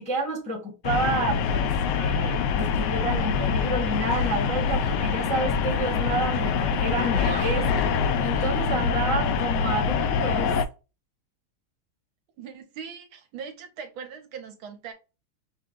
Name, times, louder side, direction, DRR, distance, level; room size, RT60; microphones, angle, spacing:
voice 1, 0.0-7.7 8.2-10.6, right 2 dB, 5° left, 0.8 m, -30 dB
sound 1, 0.8-10.7, left 6 dB, 75° left, 1.0 m, -25 dB
sound 2, 1.6-8.9, right 4 dB, 50° right, 1.0 m, -46 dB
voice 2, 12.4-14.9, right 6 dB, 70° right, 1.6 m, -40 dB
5.7 x 2.2 x 3.6 m
omnidirectional pair, 2.4 m